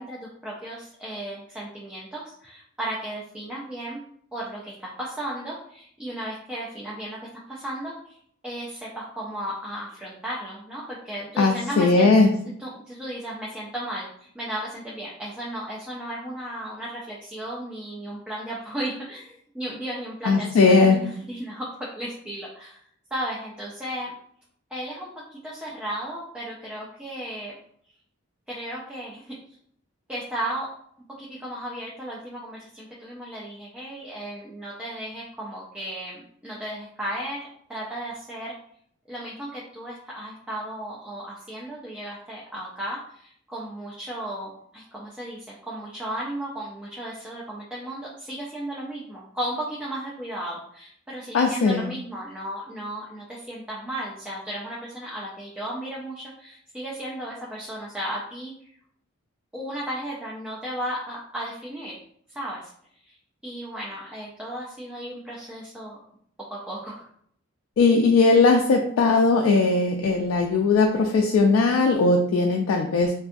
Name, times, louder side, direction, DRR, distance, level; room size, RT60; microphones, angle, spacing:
voice 1, 0.0-4.0 4.3-8.2 8.4-12.1 12.6-22.8 23.1-24.1 24.7-27.5 28.5-29.4 30.1-30.7 31.2-38.5 39.1-58.7 59.5-62.0 62.3-62.7 63.0-63.2 63.4-66.0 66.5-67.1, right 1 dB, 5° right, -6 dB, 0.4 m, -35 dB
voice 2, 11.4-12.3 20.2-21.0 51.3-51.9 67.8-73.1, left 3 dB, 70° left, 2 dB, 0.3 m, -19 dB
2.6 x 2.3 x 2.5 m, 0.66 s
head